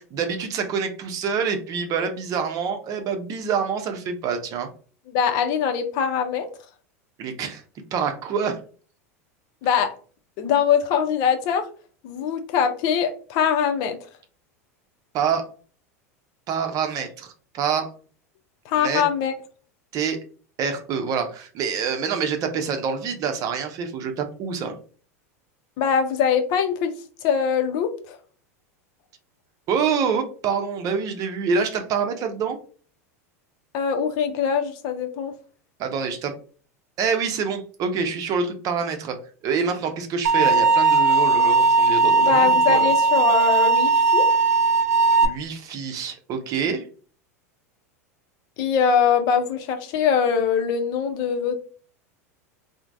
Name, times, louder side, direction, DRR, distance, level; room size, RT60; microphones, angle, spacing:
voice 1, 0.0-4.7 7.2-7.6 7.9-8.6 15.1-15.5 16.5-17.9 18.7-19.0 19.9-20.2 20.6-24.8 29.7-32.6 35.8-36.3 37.0-39.2 39.4-42.9 45.2-46.9, right 6 dB, 45° right, 0.6 m, -26 dB
voice 2, 5.1-6.5 9.6-9.9 10.4-11.6 12.0-14.0 18.7-19.3 25.8-26.9 27.2-28.2 33.7-35.3 42.2-44.3 48.6-51.6, left 7 dB, 55° left, 0.6 m, -22 dB
sound 1, 40.3-45.3, right 4 dB, 80° right, 0.4 m, -18 dB
3.1 x 2.1 x 2.5 m
hypercardioid pair, 95°, 8 cm